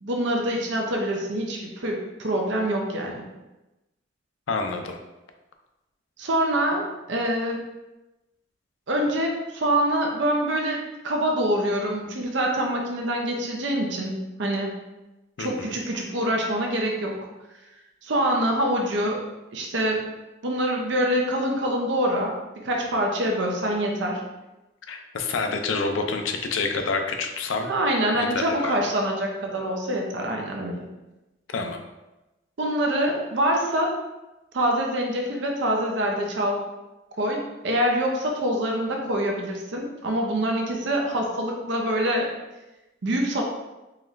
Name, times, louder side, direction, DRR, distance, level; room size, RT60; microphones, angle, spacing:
voice 1, 0.0-3.2 6.2-7.6 8.9-14.7 15.4-17.3 18.0-19.2 19.5-20.0 20.4-22.3 22.6-24.2 27.7-30.8 32.6-34.0 34.5-36.6 37.2-42.3 43.0-43.4, right 1 dB, 70° right, 0 dB, 0.6 m, -25 dB
voice 2, 4.5-5.0 15.4-15.7 24.9-27.7 28.1-28.7 31.5-31.8, left 4 dB, 90° left, 5 dB, 0.5 m, -28 dB
4.0 x 3.1 x 2.5 m, 1.0 s
head